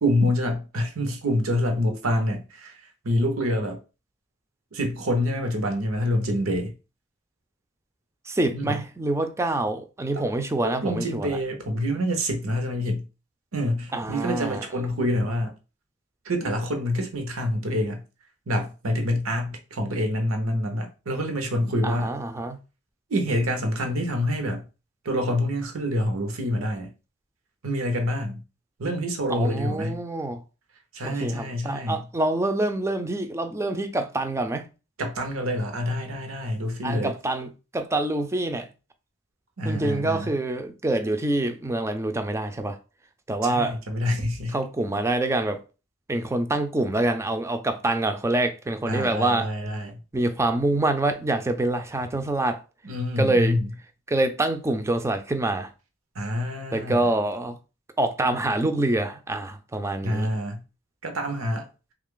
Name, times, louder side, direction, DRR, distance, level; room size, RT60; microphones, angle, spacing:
voice 1, 0.0-2.8 3.0-3.8 4.7-6.7 8.5-8.8 10.1-10.2 10.6-13.0 13.5-15.5 16.2-18.0 18.5-22.1 23.1-24.6 25.0-26.9 27.6-28.4 28.8-30.0 30.9-32.0 35.0-37.1 39.6-40.3 43.4-44.5 48.9-50.0 52.8-53.7 56.1-57.0 60.0-60.6 61.0-61.7, equal, 90° right, 0.8 m, -26 dB
voice 2, 8.3-11.4 13.9-14.6 21.8-22.6 29.3-30.4 31.0-34.7 36.8-38.7 39.6-42.8 43.3-43.8 44.5-45.6 46.1-49.5 50.1-52.6 53.2-53.6 54.1-55.7 56.7-57.6 58.0-60.3, right 2 dB, 15° right, 0.4 m, -26 dB
3.2 x 2.4 x 3.7 m
head